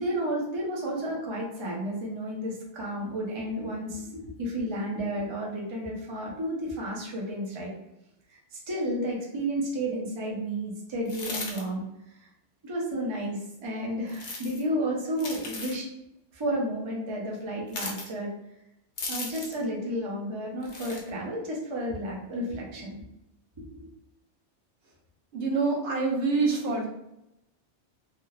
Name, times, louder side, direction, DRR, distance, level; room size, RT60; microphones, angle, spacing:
voice 1, 0.0-7.7 8.3-12.2 12.6-15.9 16.3-18.3 19.1-23.0, equal, 35° right, -3 dB, 0.5 m, -32 dB
sound 1, 11.0-11.6 14.1-14.6 15.2-15.8 17.7-18.1 19.0-19.6 20.6-21.0, left 3 dB, 50° left, 0.6 m, -36 dB
voice 2, 25.3-26.9, right 4 dB, 75° right, -1 dB, 0.9 m, -26 dB
3.0 x 2.0 x 2.3 m, 0.85 s
omnidirectional pair, 1.2 m